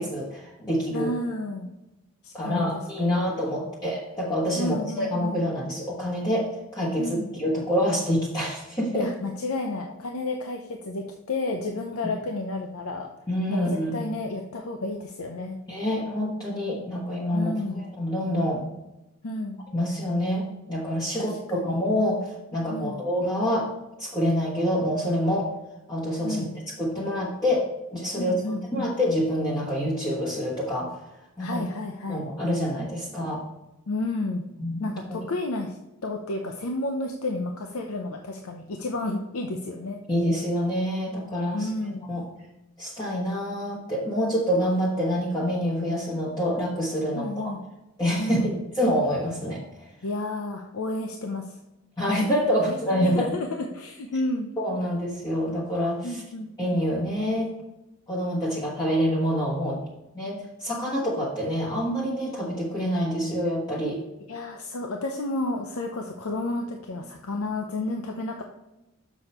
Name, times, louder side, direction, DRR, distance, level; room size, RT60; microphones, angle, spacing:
voice 1, 0.0-1.1 2.3-9.1 13.3-13.9 15.7-18.6 19.7-23.7 24.0-25.5 25.9-26.5 26.8-27.6 27.9-31.0 31.4-31.6 32.1-33.4 34.6-34.9 40.1-41.7 42.1-42.2 42.8-47.5 48.0-49.6 52.0-53.3 54.6-56.2 56.6-57.5 58.1-59.9 60.1-64.0, equal, 20° left, -6 dB, 1.2 m, -26 dB
voice 2, 0.9-1.7 2.2-3.3 4.6-5.4 7.0-7.3 8.9-13.1 13.5-15.6 17.3-17.8 19.2-19.6 21.1-21.8 22.7-23.0 26.2-26.5 28.2-28.9 31.4-32.2 33.9-34.4 34.8-35.8 36.0-40.0 41.5-42.1 47.1-47.6 48.2-48.6 50.0-51.6 52.7-52.8 53.1-54.5 56.0-56.5 64.3-68.4, left 2 dB, 85° left, 3 dB, 0.7 m, -31 dB
6.9 x 6.2 x 4.3 m, 0.95 s
head